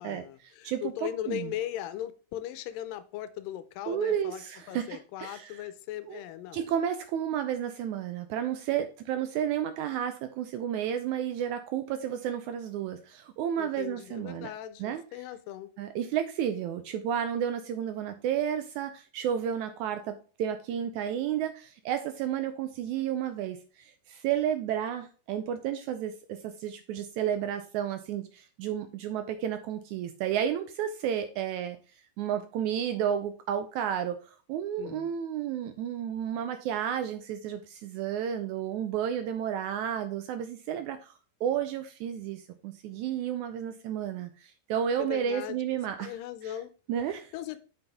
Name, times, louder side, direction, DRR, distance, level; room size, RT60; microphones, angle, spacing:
voice 1, 0.0-4.4 4.7-6.7 13.6-15.7 34.8-35.1 45.0-45.6 46.0-46.7 47.3-47.6, left 12 dB, 85° left, 2.3 m, -38 dB
voice 2, 0.6-1.5 3.9-5.7 6.1-6.2 6.5-14.5 14.8-15.0 15.8-31.8 32.2-41.1 41.4-46.1 46.4-46.5 46.9-47.3, right 9 dB, 80° right, 1.7 m, -32 dB
7.9 x 5.6 x 3.5 m
omnidirectional pair, 3.8 m